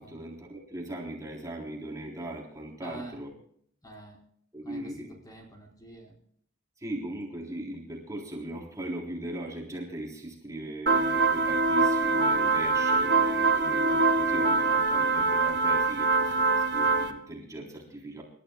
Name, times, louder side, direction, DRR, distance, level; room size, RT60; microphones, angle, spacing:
voice 1, 0.0-3.3 4.5-5.1 6.8-18.2, right 1 dB, 20° right, -2 dB, 3.6 m, -39 dB
voice 2, 2.8-3.2 3.8-4.2 4.6-6.1, right 1 dB, 20° left, -1 dB, 4.5 m, -46 dB
sound 1, 10.9-17.1, right 3 dB, 60° right, 1.7 m, -24 dB
28.0 x 13.5 x 2.3 m, 0.63 s
head